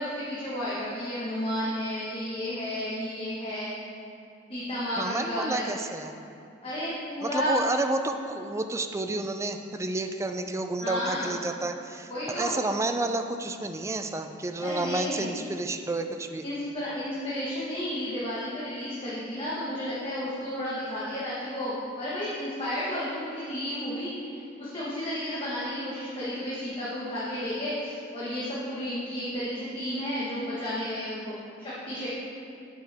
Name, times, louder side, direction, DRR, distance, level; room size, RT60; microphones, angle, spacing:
voice 1, 0.0-3.7 4.5-5.7 6.6-7.6 10.8-11.4 12.1-12.7 14.6-15.3 16.4-32.1, equal, 30° left, -9 dB, 1.3 m, -32 dB
voice 2, 5.0-6.1 7.2-16.4, right 2 dB, 15° right, 7 dB, 0.3 m, -30 dB
9.1 x 6.6 x 3.5 m, 2.6 s
head